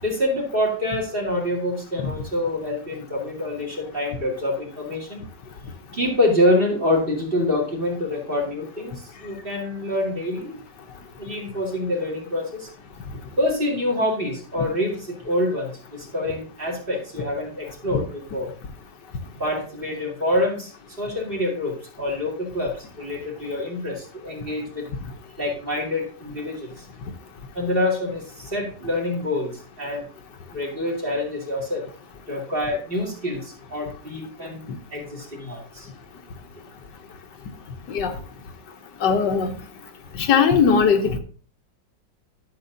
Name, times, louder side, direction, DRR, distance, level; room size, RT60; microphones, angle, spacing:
voice 1, 0.0-5.2 5.9-10.6 11.2-12.7 13.4-18.5 19.4-20.7 21.0-24.9 25.4-26.8 27.5-30.0 30.5-31.9 32.3-35.9, left 1 dB, 30° right, -2 dB, 2.6 m, -26 dB
voice 2, 39.0-39.5 40.1-41.2, left 6 dB, 70° left, 5 dB, 1.5 m, -19 dB
12.0 x 6.6 x 2.7 m, 0.42 s
omnidirectional pair, 2.0 m